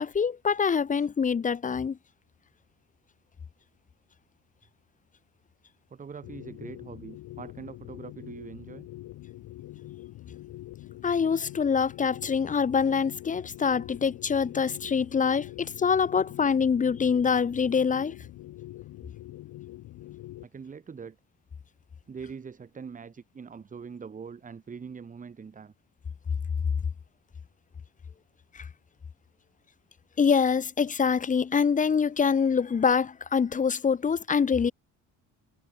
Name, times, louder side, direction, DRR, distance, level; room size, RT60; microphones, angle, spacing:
voice 1, 0.0-2.0 11.0-18.1 28.5-28.7 30.2-34.7, left 6 dB, 25° left, 1.1 m, -25 dB
voice 2, 5.9-8.9 20.4-21.2 22.1-25.7, right 6 dB, 25° right, 2.1 m, -43 dB
sound 1, 6.2-20.4, left 16 dB, 80° left, 3.7 m, -44 dB
cardioid pair, 160°, 32 cm